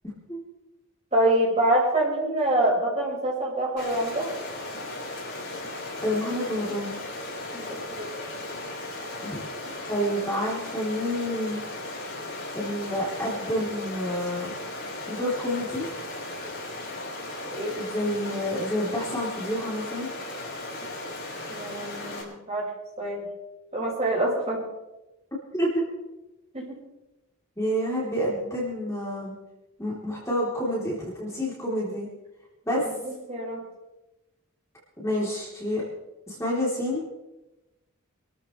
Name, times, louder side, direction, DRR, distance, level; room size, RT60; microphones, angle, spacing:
voice 1, 1.1-4.3 7.5-8.1 17.5-17.8 21.5-22.7 23.0-23.2 23.7-24.7 26.5-26.8 32.9-33.6, right 1 dB, 30° right, -4 dB, 5.7 m, -26 dB
Stream, 3.8-22.2, left 2 dB, 50° left, 5.8 m, -36 dB
voice 2, 6.0-7.0 9.2-9.4 9.9-11.6 12.5-14.5 15.1-15.9 17.8-20.1 25.5-25.8 27.6-29.3 29.8-32.1 32.7-32.8 35.0-35.8 36.3-37.0, equal, 15° left, -6 dB, 3.5 m, -28 dB
26.5 x 14.0 x 3.3 m, 1.0 s
head